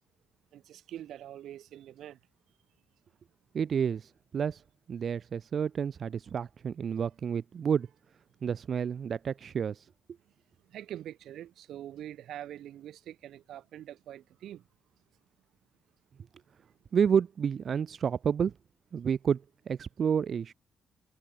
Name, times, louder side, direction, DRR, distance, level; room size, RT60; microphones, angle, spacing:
voice 1, 0.5-2.2 10.6-14.6, right 12 dB, 85° right, 7.6 m, -44 dB
voice 2, 3.5-4.6 4.9-7.9 8.4-9.9 16.9-18.5 18.9-20.5, right 7 dB, 40° right, 2.0 m, -30 dB
wide cardioid pair, 170°, 0 cm